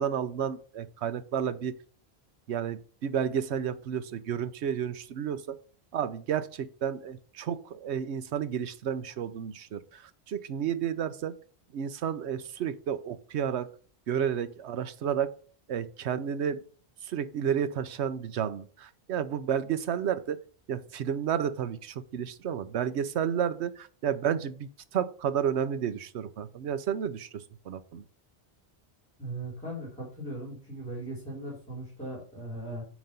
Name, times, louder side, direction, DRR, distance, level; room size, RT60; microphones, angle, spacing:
voice 1, 0.0-1.8 2.5-5.6 5.9-11.3 11.7-13.7 14.1-15.3 15.7-16.6 17.0-20.4 20.7-28.0, right 8 dB, 80° right, 12 dB, 1.0 m, -31 dB
voice 2, 29.2-32.8, right 1 dB, 5° left, -5 dB, 3.6 m, -38 dB
9.2 x 3.1 x 6.6 m, 0.43 s
omnidirectional pair, 1.1 m